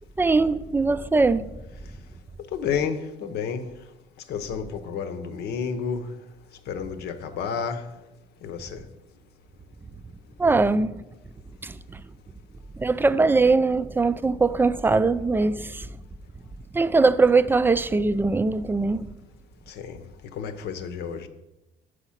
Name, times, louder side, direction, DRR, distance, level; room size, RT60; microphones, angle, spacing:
voice 1, 0.2-1.4 10.4-11.0 11.6-11.8 12.8-15.9 16.7-19.0, right 3 dB, 10° right, 0.3 m, -21 dB
voice 2, 2.5-3.7 4.3-6.1 6.7-7.9 8.4-8.8 19.7-20.0 20.3-21.3, left 6 dB, 75° left, 0.9 m, -30 dB
7.9 x 4.9 x 5.7 m
cardioid pair, 110°, 17 cm